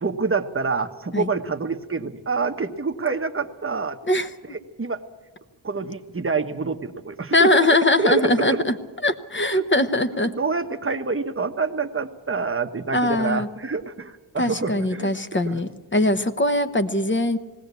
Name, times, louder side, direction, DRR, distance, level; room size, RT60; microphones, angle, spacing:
voice 1, 0.0-4.0 4.5-5.0 5.6-7.7 8.0-8.6 9.5-9.7 10.2-15.6, right 4 dB, 25° right, 7 dB, 1.0 m, -27 dB
voice 2, 7.3-8.7 9.0-10.3 12.9-13.5 14.4-17.4, left 1 dB, 25° left, 10 dB, 1.0 m, -21 dB
19.5 x 17.0 x 8.2 m, 1.2 s
wide cardioid pair, 100°, 48 cm